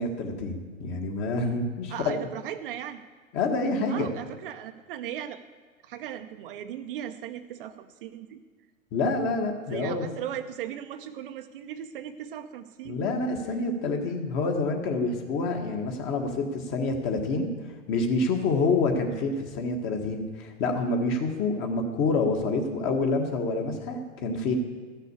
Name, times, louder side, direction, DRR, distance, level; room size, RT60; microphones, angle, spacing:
voice 1, 0.0-2.3 3.3-4.1 8.9-10.0 12.9-17.5 17.9-24.6, left 3 dB, 30° left, 4 dB, 1.8 m, -27 dB
voice 2, 1.9-3.0 3.9-5.4 5.8-8.4 9.7-13.0, right 10 dB, 45° right, 8 dB, 0.7 m, -37 dB
13.5 x 6.6 x 8.4 m, 1.4 s
hypercardioid pair, 130°, 39 cm